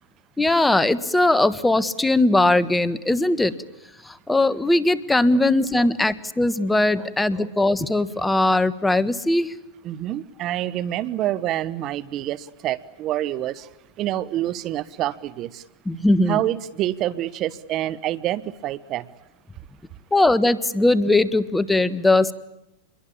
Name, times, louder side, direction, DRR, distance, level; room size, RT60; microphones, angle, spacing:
voice 1, 0.4-3.5 4.0-9.5 15.8-16.4 20.1-22.3, left 2 dB, 10° left, 15 dB, 1.5 m, -20 dB
voice 2, 9.8-13.7 14.0-15.6 16.3-19.0, right 13 dB, 40° right, 18 dB, 1.1 m, -27 dB
28.0 x 23.0 x 8.7 m, 0.88 s
hypercardioid pair, 115°, 0 cm